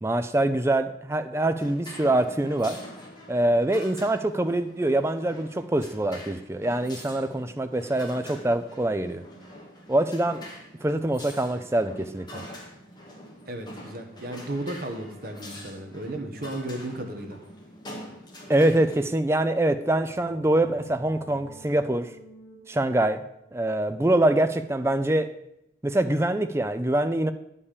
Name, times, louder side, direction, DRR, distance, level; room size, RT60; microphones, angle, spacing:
voice 1, 0.0-2.8 3.3-9.2 9.9-10.4 10.8-12.4 18.5-22.1 22.7-23.2 23.5-25.3 25.8-27.3, right 1 dB, 15° right, 9 dB, 0.4 m, -24 dB
sound 1, 1.6-19.1, left 1 dB, 20° left, 2.0 m, -45 dB
voice 2, 13.5-17.4, right 1 dB, 50° right, 4 dB, 1.3 m, -34 dB
sound 2, 19.6-25.1, equal, 65° left, 2.7 m, -52 dB
9.7 x 5.5 x 6.7 m, 0.82 s
head